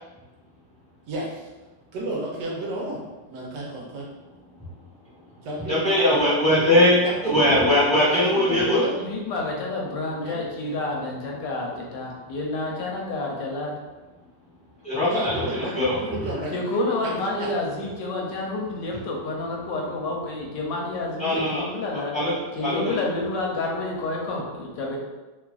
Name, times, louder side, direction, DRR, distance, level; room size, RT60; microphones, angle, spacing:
voice 1, 1.1-1.5 1.9-3.0 3.3-4.1 5.4-6.3 7.0-7.6 8.0-8.9 10.2-10.4 15.0-16.5 17.0-17.5, right 1 dB, 75° right, -3 dB, 1.1 m, -32 dB
voice 2, 5.7-8.8 14.8-16.0 21.2-21.7 22.1-22.3 22.6-23.0, left 1 dB, 5° left, -12 dB, 0.6 m, -20 dB
voice 3, 9.0-13.7 16.5-22.1 22.6-25.0, left 2 dB, 80° left, -1 dB, 1.2 m, -29 dB
3.0 x 2.4 x 2.2 m, 1.2 s
omnidirectional pair, 2.0 m